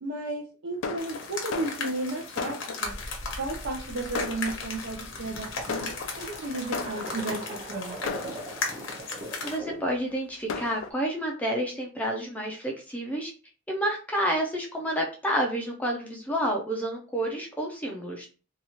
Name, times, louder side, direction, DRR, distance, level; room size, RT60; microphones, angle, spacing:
voice 1, 0.0-3.0 3.4-8.2, right 2 dB, 65° right, -1 dB, 0.6 m, -34 dB
Fireworks, 0.8-3.2 3.8-3.9 4.1-5.0 5.7-7.5 8.1-9.0 9.7-9.8 10.1-10.2 10.5-10.9, left 5 dB, 85° left, 0.4 m, -36 dB
sound 1, 1.0-9.6, left 4 dB, 65° left, 0.8 m, -37 dB
sound 2, 2.8-10.0, right 1 dB, 30° right, 0.7 m, -41 dB
voice 2, 9.4-13.3 13.7-18.3, equal, 10° left, -1 dB, 0.4 m, -29 dB
2.8 x 2.3 x 2.9 m, 0.36 s
head